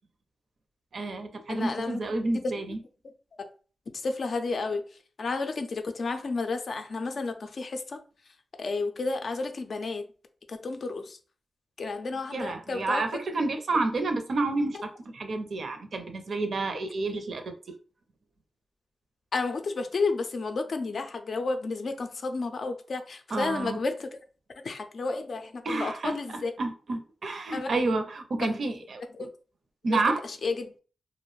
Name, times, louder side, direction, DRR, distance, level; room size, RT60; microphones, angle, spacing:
voice 1, 0.9-2.8 12.3-17.4 23.3-23.8 25.7-26.1 26.6-29.0 29.8-30.2, right 3 dB, 65° right, 0.4 m, -29 dB
voice 2, 1.5-2.2 3.4-3.5 3.9-8.0 8.6-10.0 10.5-11.2 11.8-13.1 14.7-14.8 19.3-24.2 24.6-26.5 27.5-27.7 28.4-28.5 29.1-29.3 29.9-30.7, left 3 dB, 65° left, 0.4 m, -32 dB
2.4 x 2.0 x 3.0 m
cardioid pair, 60°, 0 cm